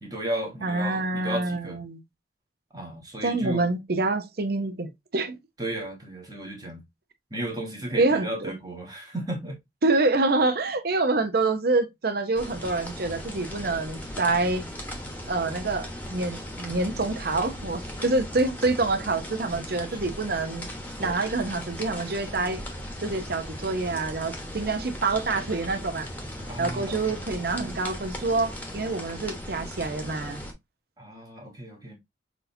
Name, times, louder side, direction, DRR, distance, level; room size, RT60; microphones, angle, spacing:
voice 1, 0.0-1.8 2.7-3.7 5.6-6.8 7.3-9.6 17.9-18.1 19.9-20.1 21.0-21.3 26.5-27.2 31.0-32.0, right 1 dB, 20° right, 1.2 m, -34 dB
voice 2, 0.6-2.0 3.2-5.4 7.9-8.5 9.8-14.6 15.3-20.7 21.0-22.6 23.0-26.1 26.6-30.4, right 3 dB, 55° right, 0.8 m, -26 dB
sound 1, 12.3-30.5, equal, 10° left, 1.1 m, -38 dB
6.1 x 2.8 x 2.7 m
head